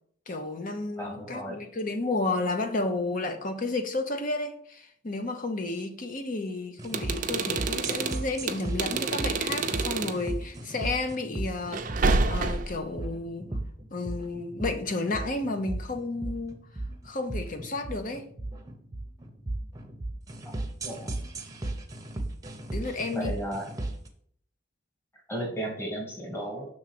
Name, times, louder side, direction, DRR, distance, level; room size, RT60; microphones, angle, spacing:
voice 1, 0.3-11.9 12.3-13.5 13.9-16.6 17.0-18.3 22.7-23.3, left 2 dB, 45° left, 0.8 m, -32 dB
voice 2, 1.0-1.6 20.8-21.1 23.1-23.6 25.3-26.6, right 1 dB, 10° left, 1.6 m, -34 dB
sound 1, 6.8-24.1, right 2 dB, 20° right, 0.8 m, -36 dB
sound 2, 6.8-10.2 11.7-12.8, right 3 dB, 45° right, 0.5 m, -28 dB
6.3 x 3.7 x 6.0 m
head